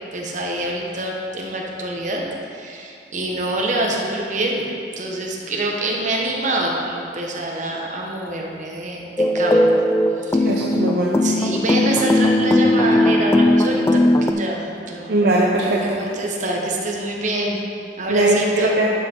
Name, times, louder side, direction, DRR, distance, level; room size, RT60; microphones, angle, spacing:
voice 1, 0.1-2.2 2.5-4.7 5.0-9.8 10.2-10.6 11.2-15.1 15.6-17.6 18.0-18.8, right 1 dB, 45° right, -1 dB, 1.2 m, -25 dB
sound 1, 9.2-14.3, left 1 dB, 15° left, 0.3 m, -18 dB
voice 2, 10.4-11.2 15.1-16.0 18.1-18.9, right 1 dB, 65° right, -3 dB, 0.8 m, -19 dB
11.5 x 5.4 x 4.6 m, 2.5 s
head